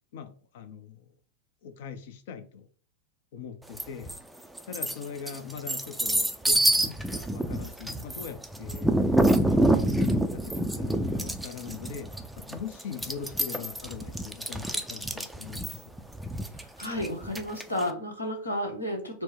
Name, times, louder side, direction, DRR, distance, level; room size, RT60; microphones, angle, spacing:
voice 1, 0.1-1.1 1.6-2.7 3.3-4.1 4.7-15.9, left 7 dB, 55° left, 9 dB, 0.6 m, -41 dB
sound 1, 3.8-4.2 4.6-17.8, right 1 dB, 5° right, 0.4 m, -27 dB
voice 2, 16.8-19.2, left 1 dB, 80° left, 2 dB, 1.2 m, -32 dB
4.4 x 2.1 x 4.6 m, 0.41 s
figure-of-eight pair, 90°, 0 cm